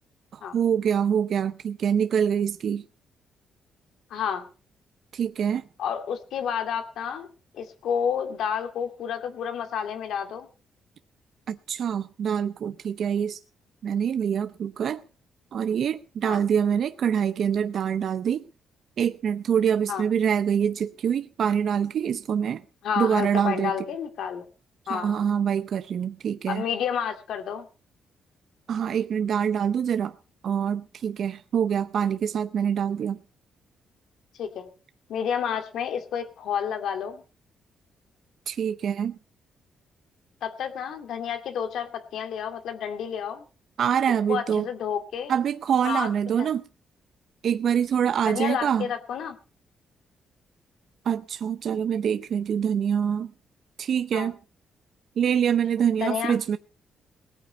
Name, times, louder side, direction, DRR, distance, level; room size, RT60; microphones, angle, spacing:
voice 1, 0.3-2.8 5.1-5.6 11.5-13.4 13.8-15.0 15.5-18.5 19.0-22.6 23.0-23.7 24.9-26.6 28.7-30.2 30.4-33.2 38.5-39.2 43.8-44.7 45.3-46.6 47.4-48.9 51.0-53.3 53.8-54.4 55.2-56.6, right 8 dB, 60° right, 0.6 m, -25 dB
voice 2, 4.1-4.5 5.8-7.3 7.5-10.5 16.2-16.4 19.9-20.0 22.8-24.5 24.9-25.2 26.5-27.7 34.4-34.7 35.1-37.2 40.4-43.4 44.3-45.3 45.8-46.5 48.2-49.4 54.1-54.3 56.0-56.4, left 8 dB, 80° left, 2.4 m, -30 dB
19.0 x 9.0 x 5.3 m
cardioid pair, 130°, 0 cm